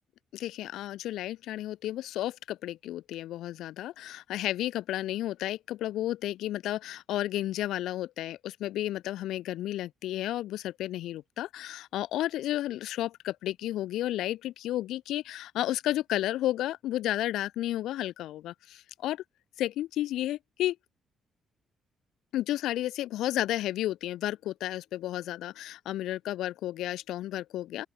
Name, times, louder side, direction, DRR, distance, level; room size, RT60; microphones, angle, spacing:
voice 1, 0.3-19.2 19.6-20.8 22.3-27.9, left 14 dB, 85° left, 1.0 m, -32 dB
open air
cardioid pair, 90°, 0 cm